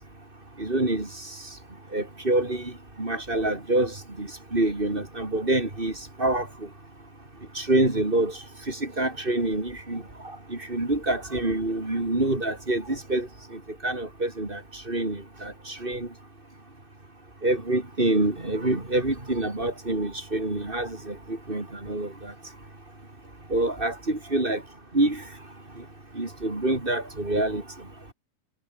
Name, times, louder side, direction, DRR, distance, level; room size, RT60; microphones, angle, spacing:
voice 1, 0.6-1.1 1.9-2.7 3.0-3.9 4.2-5.9 6.2-6.5 7.6-8.3 8.7-10.0 10.5-13.3 13.8-14.6 14.9-16.1 17.4-22.1 23.5-24.6 24.9-25.2 26.2-27.6, right 2 dB, 15° right, 3.7 m, -26 dB
omnidirectional pair, 3.8 m